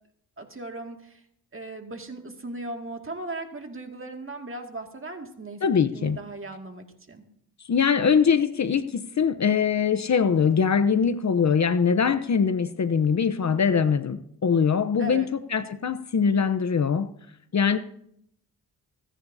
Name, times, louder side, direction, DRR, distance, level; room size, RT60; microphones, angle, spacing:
voice 1, 0.4-1.2 1.5-5.6 5.9-7.2 15.0-15.3, right 2 dB, 35° right, 4 dB, 2.2 m, -37 dB
voice 2, 5.6-6.2 7.7-15.2 15.5-17.1 17.5-17.8, left 6 dB, 45° left, 11 dB, 0.8 m, -22 dB
25.0 x 10.0 x 2.8 m, 0.72 s
cardioid pair, 55°, 38 cm